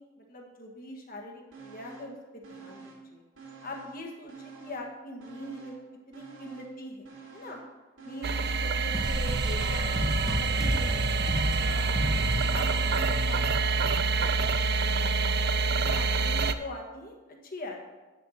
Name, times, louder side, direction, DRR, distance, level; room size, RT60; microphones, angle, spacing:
voice 1, 0.0-3.2 3.6-7.6 8.0-12.1 12.5-15.3 15.7-17.8, equal, 45° left, 1 dB, 1.6 m, -43 dB
sound 1, 1.5-2.2 2.4-4.0 4.3-8.7 9.0-9.1, right 4 dB, 75° right, 2.8 m, -48 dB
sound 2, 8.2-16.5, right 4 dB, 55° right, 0.5 m, -27 dB
sound 3, 8.9-14.2, equal, 5° right, 1.7 m, -32 dB
7.2 x 6.8 x 6.5 m, 1.2 s
head